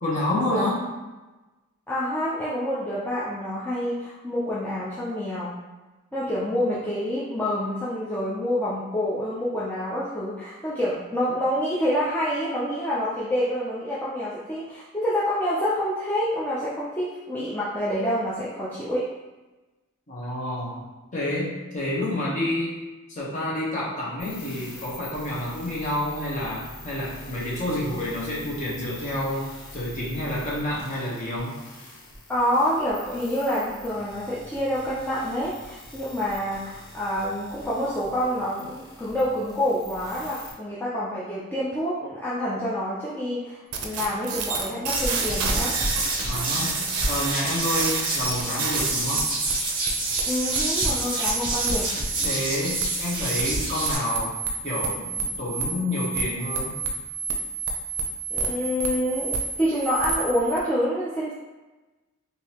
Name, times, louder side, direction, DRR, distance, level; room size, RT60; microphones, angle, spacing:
voice 1, 0.0-0.8 20.1-20.8 21.1-22.8 23.1-31.6 46.3-49.3 52.2-54.4 54.6-56.8, left 1 dB, 35° left, -6 dB, 1.0 m, -29 dB
voice 2, 1.9-5.6 6.1-19.1 32.3-45.7 50.3-51.8 58.3-61.3, equal, 10° left, -9 dB, 0.4 m, -27 dB
sound 1, 24.2-40.5, left 2 dB, 80° left, 0.8 m, -44 dB
sound 2, 43.7-60.6, right 5 dB, 85° right, 0.5 m, -30 dB
sound 3, 45.0-53.9, right 2 dB, 20° right, 0.8 m, -28 dB
3.7 x 2.7 x 2.9 m, 1.1 s
head